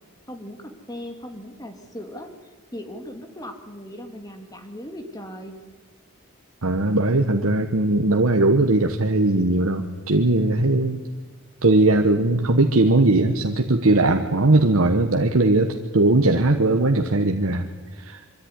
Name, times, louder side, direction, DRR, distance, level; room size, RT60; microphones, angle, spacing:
voice 1, 0.3-2.3 2.7-5.6, equal, 15° left, 5 dB, 2.2 m, -38 dB
voice 2, 6.6-11.0 11.6-17.7 18.0-18.2, right 2 dB, 70° right, 4 dB, 1.2 m, -19 dB
24.0 x 14.0 x 9.7 m, 1.4 s
head